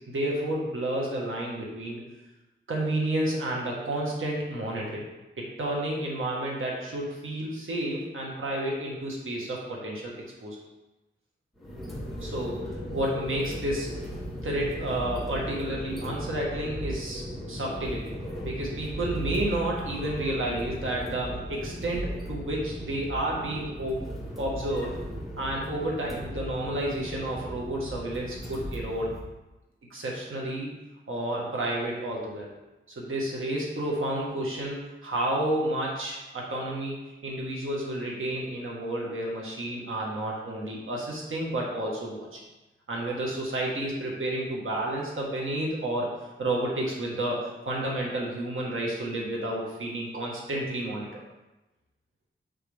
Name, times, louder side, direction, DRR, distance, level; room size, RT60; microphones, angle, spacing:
voice 1, 0.1-2.0 2.7-5.0 5.4-10.1 10.4-10.6 12.2-12.6 12.9-13.9 14.4-18.1 18.4-24.1 24.4-25.0 25.4-29.1 29.9-30.7 31.1-32.5 33.0-42.4 42.9-46.1 46.4-51.1, right 1 dB, 85° right, -3 dB, 1.6 m, -31 dB
sound 1, 11.6-29.2, equal, ahead, 1.7 m, -37 dB
5.9 x 5.6 x 3.6 m, 1.0 s
wide cardioid pair, 95°, 20 cm